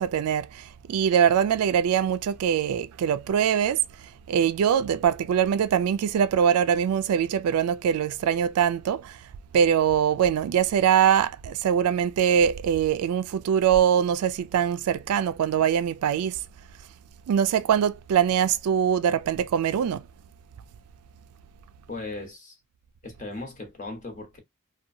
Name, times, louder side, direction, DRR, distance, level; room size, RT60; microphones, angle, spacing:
voice 1, 0.0-9.3 9.5-16.4 17.3-20.1, right 8 dB, 80° right, 0.3 m, -23 dB
voice 2, 21.9-22.6 23.0-24.4, left 2 dB, 35° left, 1.0 m, -37 dB
2.7 x 2.3 x 2.6 m
head